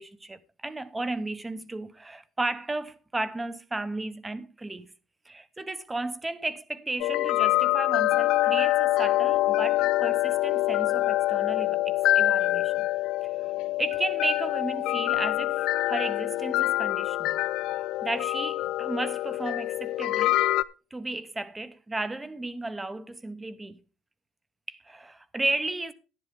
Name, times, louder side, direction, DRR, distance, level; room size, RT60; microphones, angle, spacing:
voice 1, 0.0-4.9 5.3-12.9 13.8-17.4 18.0-20.4 20.9-23.8 24.7-25.9, right 2 dB, 10° right, 0.7 m, -34 dB
sound 1, 7.0-20.6, left 16 dB, 55° left, 0.4 m, -25 dB
12.0 x 10.5 x 3.5 m
cardioid pair, 170°, 0 cm